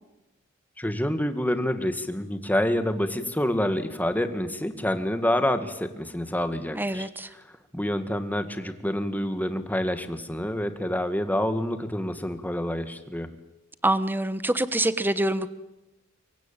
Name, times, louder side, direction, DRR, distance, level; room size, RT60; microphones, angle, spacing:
voice 1, 0.8-7.1 7.7-13.3, left 1 dB, 10° left, 9 dB, 2.0 m, -27 dB
voice 2, 6.7-7.3 13.8-15.5, right 1 dB, 10° right, 13 dB, 1.3 m, -25 dB
25.0 x 23.5 x 9.0 m, 0.99 s
head